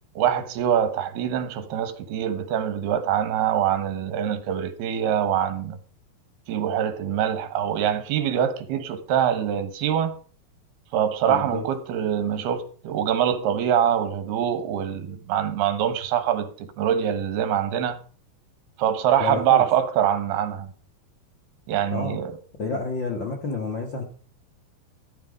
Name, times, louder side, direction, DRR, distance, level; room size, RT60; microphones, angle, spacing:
voice 1, 0.2-5.8 6.5-10.1 10.9-18.0 18.8-20.7 21.7-22.3, right 9 dB, 75° right, 3.2 m, -24 dB
voice 2, 11.3-11.6 19.2-19.6 21.9-22.2 22.6-24.0, left 4 dB, 55° left, 1.3 m, -29 dB
14.0 x 9.9 x 5.2 m
omnidirectional pair, 4.7 m